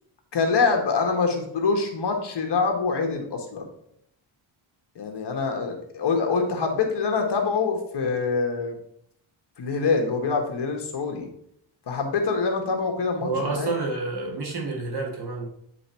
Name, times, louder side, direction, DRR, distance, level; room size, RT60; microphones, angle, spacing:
voice 1, 0.3-3.6 4.9-8.7 9.6-11.3 11.9-13.7, left 4 dB, 55° left, 3 dB, 1.4 m, -25 dB
voice 2, 13.2-15.5, right 3 dB, 50° right, 0 dB, 1.7 m, -29 dB
7.8 x 3.5 x 4.3 m, 0.72 s
wide cardioid pair, 110°, 49 cm